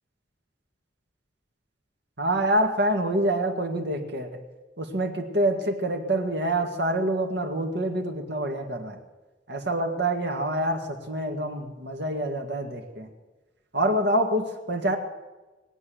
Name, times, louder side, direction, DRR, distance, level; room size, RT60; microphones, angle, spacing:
voice 1, 2.2-4.4 4.8-9.0 9.5-13.1 13.7-15.0, right 1 dB, 60° right, 3 dB, 1.9 m, -26 dB
20.5 x 8.6 x 7.7 m, 1.2 s
head